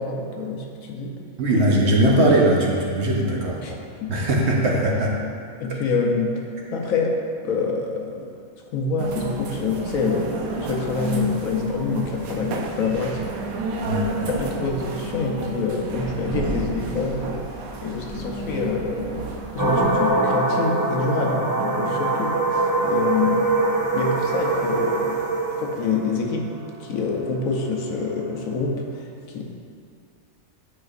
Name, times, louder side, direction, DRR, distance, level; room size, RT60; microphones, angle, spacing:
voice 1, 0.0-1.2 3.6-4.3 5.6-8.3 8.7-13.3 13.7-13.8 14.3-23.5 23.9-25.2 25.6-26.5 26.8-29.4, left 4 dB, 75° left, 0 dB, 1.2 m, -26 dB
voice 2, 1.4-3.8 4.1-5.1 13.8-14.1, right 1 dB, 55° right, -2 dB, 1.0 m, -20 dB
sound 1, 9.0-20.1, right 1 dB, 80° right, 1.1 m, -31 dB
sound 2, 19.6-28.5, right 2 dB, 20° right, 0.4 m, -23 dB
9.5 x 5.1 x 2.4 m, 2.3 s
omnidirectional pair, 1.5 m